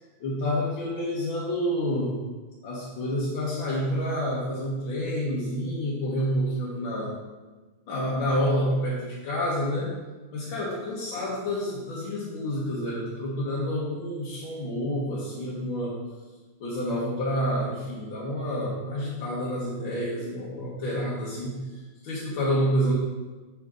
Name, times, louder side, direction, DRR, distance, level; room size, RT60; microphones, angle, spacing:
voice 1, 0.2-2.2 2.6-7.2 7.9-9.9 10.3-16.0 16.6-22.9, equal, 75° left, -7 dB, 2.1 m, -28 dB
9.0 x 6.0 x 3.8 m, 1.3 s
omnidirectional pair, 2.2 m